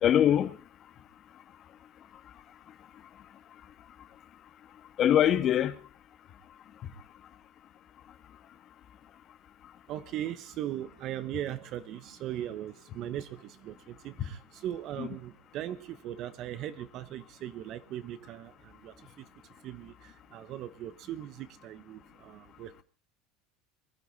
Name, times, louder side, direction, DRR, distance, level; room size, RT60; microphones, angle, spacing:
voice 1, 0.0-0.6 5.0-5.8 6.8-6.9 14.2-14.3 15.0-15.1, left 10 dB, 40° left, 1.5 m, -23 dB
voice 2, 9.9-19.3 19.6-22.8, right 12 dB, 45° right, 1.0 m, -39 dB
22.0 x 11.5 x 4.1 m
supercardioid pair, 130°, 0 cm